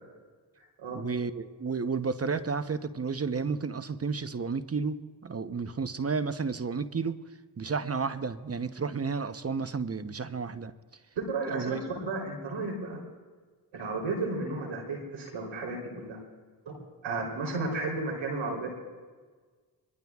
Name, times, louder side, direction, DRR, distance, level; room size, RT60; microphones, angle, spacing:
voice 1, 0.9-7.2 7.6-10.7 11.5-11.8, right 5 dB, 30° right, 12 dB, 0.8 m, -32 dB
voice 2, 11.2-13.0 13.7-16.2 16.7-16.8 17.0-18.7, right 3 dB, 85° right, 0 dB, 3.6 m, -33 dB
23.5 x 21.0 x 2.4 m, 1.5 s
supercardioid pair, 40°, 46 cm